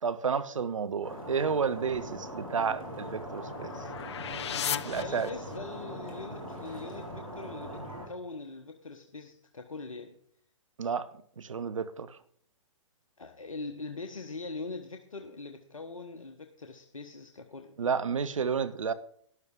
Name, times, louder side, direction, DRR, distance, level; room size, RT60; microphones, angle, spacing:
voice 1, 0.0-3.7 4.8-5.3 10.8-11.1 11.4-12.2 17.8-18.9, right 6 dB, 70° right, 0.8 m, -31 dB
Stream, 1.0-8.1, equal, 85° right, 4.0 m, -41 dB
sound 1, 2.4-5.8, left 9 dB, 55° left, 0.6 m, -38 dB
voice 2, 5.0-10.2 13.2-17.7, left 3 dB, 80° left, 1.1 m, -42 dB
12.5 x 11.0 x 3.7 m
figure-of-eight pair, 120°, 17 cm